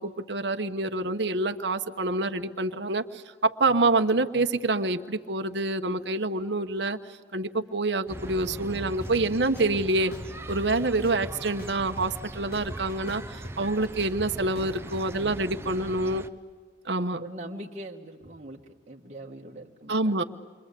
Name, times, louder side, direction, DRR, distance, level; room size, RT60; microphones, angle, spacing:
voice 1, 0.0-7.0 7.3-10.1 10.5-16.2 16.8-17.2 19.9-20.2, right 2 dB, 65° right, 6 dB, 1.1 m, -27 dB
sound 1, 8.1-16.3, right 1 dB, 15° right, 0.9 m, -41 dB
sound 2, 9.0-9.1 9.6-10.6 11.0-12.2 12.5-15.0, equal, 55° left, 2.7 m, -41 dB
voice 2, 14.6-14.9 17.2-18.6 18.9-20.2, right 1 dB, 40° right, -1 dB, 1.8 m, -42 dB
28.5 x 24.5 x 8.4 m, 1.5 s
head